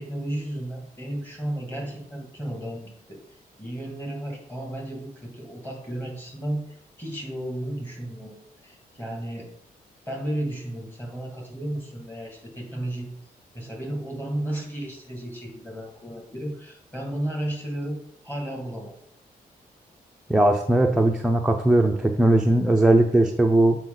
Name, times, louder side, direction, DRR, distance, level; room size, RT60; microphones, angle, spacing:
voice 1, 0.0-9.5 10.1-13.1 13.5-18.9, right 1 dB, 15° left, 0 dB, 2.2 m, -33 dB
voice 2, 20.3-23.8, right 1 dB, 5° right, 1 dB, 0.5 m, -19 dB
7.8 x 4.6 x 3.9 m, 0.67 s
wide cardioid pair, 135°, 16 cm